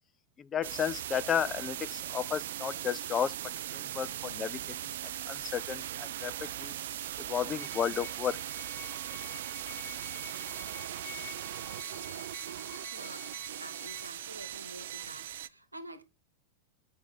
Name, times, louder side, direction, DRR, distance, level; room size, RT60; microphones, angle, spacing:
voice 1, 0.4-3.3 3.7-6.7 7.3-8.4, left 8 dB, 25° left, 0.5 m, -33 dB
sound 1, 0.6-15.5, right 12 dB, 60° right, 0.4 m, -39 dB
sound 2, 7.5-14.1, left 8 dB, 60° left, 1.6 m, -49 dB
voice 2, 12.9-16.0, right 1 dB, 85° right, 1.1 m, -48 dB
8.4 x 5.3 x 4.0 m
figure-of-eight pair, 90°, 0 cm